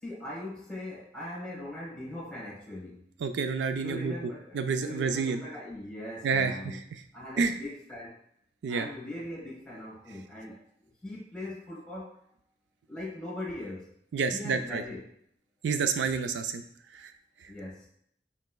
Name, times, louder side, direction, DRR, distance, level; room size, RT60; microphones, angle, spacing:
voice 1, 0.0-3.1 3.8-6.9 7.1-8.2 8.7-10.6 11.0-12.2 12.9-14.0 14.3-15.1 17.5-17.9, left 1 dB, 5° left, -5 dB, 1.2 m, -40 dB
voice 2, 3.2-4.1 4.5-5.4 6.2-6.8 7.4-7.5 8.6-8.9 14.1-14.8 15.6-16.6 16.9-17.1, right 5 dB, 80° right, 8 dB, 0.3 m, -29 dB
4.3 x 3.0 x 2.2 m, 0.67 s
head